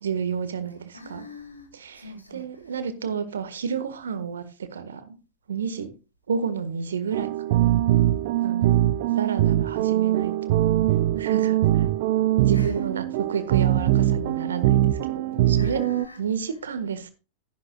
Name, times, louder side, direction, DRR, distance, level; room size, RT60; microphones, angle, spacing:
voice 1, 0.0-1.2 1.7-2.0 2.3-5.2 5.5-5.9 6.3-7.6 8.4-8.9 9.1-10.6 11.1-11.9 12.5-15.8 16.2-17.1, right 6 dB, 65° right, 1.5 m, -31 dB
voice 2, 0.9-1.7 1.9-2.8 7.9-8.5 12.5-12.8 15.6-16.2, left 1 dB, 85° left, 2.9 m, -44 dB
sound 1, 7.1-16.1, right 13 dB, 50° right, 0.6 m, -22 dB
13.5 x 11.0 x 2.3 m
figure-of-eight pair, 90°, 0 cm